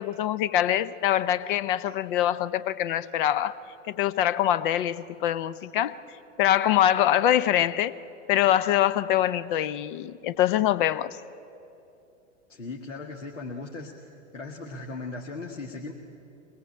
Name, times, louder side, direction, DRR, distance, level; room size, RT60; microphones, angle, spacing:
voice 1, 0.0-3.5 3.9-5.9 6.4-7.9 8.3-11.2, left 12 dB, 40° left, 17 dB, 0.8 m, -24 dB
voice 2, 12.5-13.9 14.3-15.9, left 3 dB, 75° left, 0 dB, 2.1 m, -37 dB
23.5 x 20.0 x 8.6 m, 2.9 s
figure-of-eight pair, 95°, 37 cm